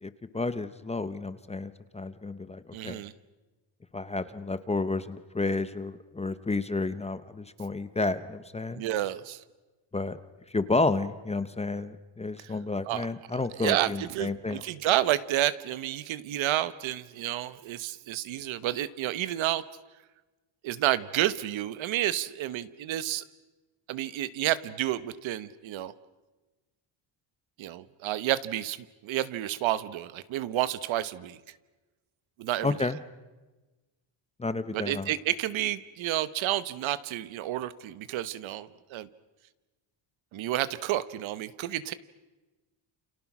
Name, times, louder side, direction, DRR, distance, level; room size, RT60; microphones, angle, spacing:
voice 1, 0.0-3.0 3.9-8.8 9.9-10.2 10.5-14.6 32.6-33.0 34.4-35.1, left 3 dB, 15° left, 13 dB, 0.8 m, -31 dB
voice 2, 2.7-3.1 8.7-9.4 12.4-12.5 12.9-19.6 20.6-23.2 23.9-25.9 27.6-31.4 32.4-32.9 34.7-39.1 40.3-41.9, right 13 dB, 65° right, 15 dB, 1.2 m, -30 dB
29.0 x 28.5 x 6.1 m, 1.2 s
cardioid pair, 155°, 49 cm